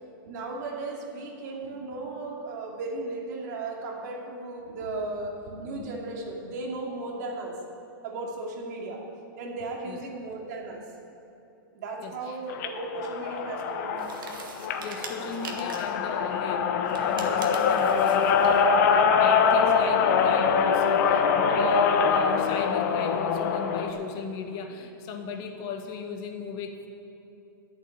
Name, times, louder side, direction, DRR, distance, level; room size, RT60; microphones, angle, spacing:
voice 1, 0.2-7.6 8.0-9.0 9.4-10.8 11.7-14.2 16.6-16.8 22.0-22.1, right 2 dB, 55° right, 0 dB, 2.5 m, -36 dB
voice 2, 12.0-12.4 14.8-26.9, left 5 dB, 35° left, 5 dB, 1.5 m, -37 dB
sound 1, 12.5-23.9, left 6 dB, 50° left, 1.2 m, -24 dB
sound 2, 14.0-16.0 16.9-18.7, right 5 dB, 75° right, 1.9 m, -43 dB
11.5 x 7.6 x 8.9 m, 3.0 s
hypercardioid pair, 145°, 11 cm